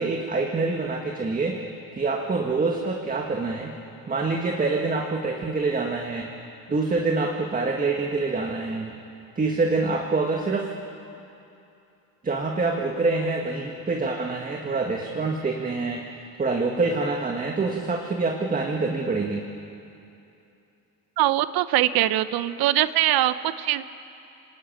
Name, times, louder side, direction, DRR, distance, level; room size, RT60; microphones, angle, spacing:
voice 1, 0.0-1.6 1.9-3.7 4.0-6.3 6.7-8.9 9.3-10.7 12.2-19.4, right 3 dB, 20° right, 1 dB, 1.7 m, -26 dB
voice 2, 21.2-23.8, right 13 dB, 70° right, 14 dB, 0.9 m, -22 dB
26.5 x 19.0 x 9.2 m, 2.7 s
cardioid pair, 140°, 37 cm